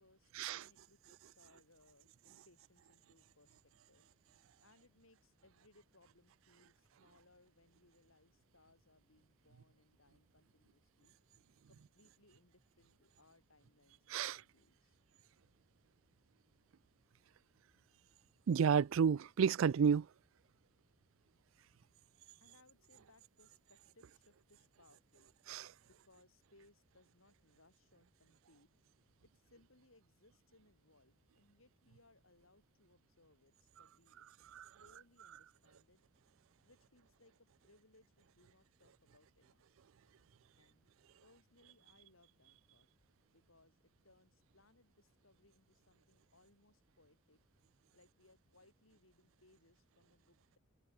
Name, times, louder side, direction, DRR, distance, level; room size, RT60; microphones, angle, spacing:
voice 1, 0.0-4.1 4.6-11.1 11.7-15.0 22.4-25.3 25.8-28.7 29.2-36.0 36.6-39.6 40.5-40.9 41.2-42.9 43.3-47.4 47.9-50.6, left 2 dB, 80° left, 7.4 m, -69 dB
voice 2, 18.5-20.1 25.5-25.6 34.6-34.7, right 7 dB, 75° right, 0.4 m, -30 dB
head